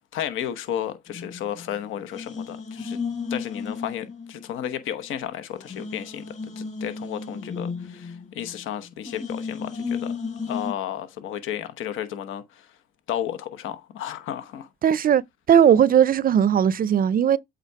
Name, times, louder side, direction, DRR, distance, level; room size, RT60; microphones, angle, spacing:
voice 1, 0.1-3.0 3.3-10.1 10.5-12.8 13.1-14.7, left 10 dB, 85° left, 1.0 m, -33 dB
sound 1, 1.1-1.8 2.1-4.7 5.0-5.1 5.5-8.6 9.0-10.7, left 5 dB, 35° left, 4.0 m, -34 dB
voice 2, 14.8-15.2 15.5-17.4, right 9 dB, 45° right, 0.4 m, -18 dB
8.3 x 3.9 x 4.6 m
cardioid pair, 90°, 20 cm